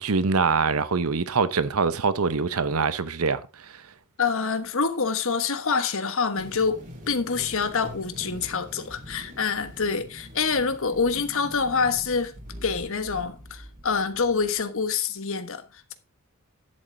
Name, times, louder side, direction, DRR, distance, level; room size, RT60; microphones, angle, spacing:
voice 1, 0.0-3.4, right 4 dB, 75° right, 0.8 m, -24 dB
voice 2, 4.2-12.3 12.6-15.9, left 5 dB, 65° left, 1.2 m, -26 dB
sound 1, 6.4-14.8, equal, 35° right, 2.7 m, -44 dB
11.0 x 7.8 x 3.8 m
head